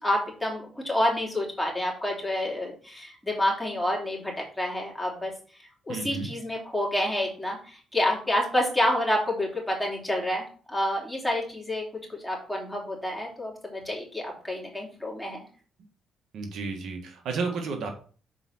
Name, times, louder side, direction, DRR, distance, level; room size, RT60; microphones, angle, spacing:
voice 1, 0.0-5.3 5.6-15.4, left 1 dB, 5° left, -2 dB, 3.2 m, -28 dB
voice 2, 5.9-6.3 16.3-17.9, right 4 dB, 70° right, 3 dB, 1.6 m, -32 dB
7.0 x 4.8 x 4.2 m, 0.40 s
cardioid pair, 90°, 0 cm